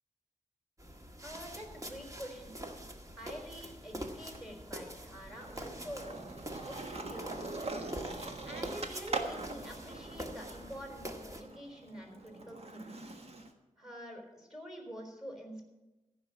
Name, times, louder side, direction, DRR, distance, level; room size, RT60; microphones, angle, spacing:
sound 1, 0.8-11.4, equal, 25° right, 1.7 m, -45 dB
voice 1, 1.2-2.6 3.2-6.2 6.7-7.6 8.4-13.0 13.8-15.7, equal, 5° right, 2 dB, 3.7 m, -47 dB
Skateboard, 1.3-2.9 3.3-13.5, right 3 dB, 55° right, 1.5 m, -43 dB
14.5 x 5.9 x 8.7 m, 1.1 s
wide cardioid pair, 65°, 12 cm